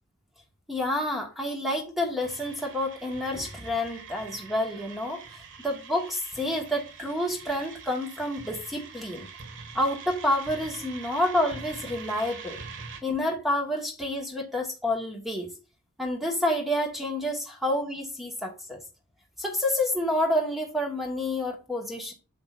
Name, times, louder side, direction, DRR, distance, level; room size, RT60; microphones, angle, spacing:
voice 1, 0.7-5.2 5.6-9.3 9.7-12.6 13.0-15.5 16.0-18.8 19.4-22.1, left 1 dB, ahead, 1.5 m, -29 dB
sound 1, 2.2-13.0, right 5 dB, 60° right, 1.7 m, -44 dB
8.3 x 6.8 x 2.5 m
head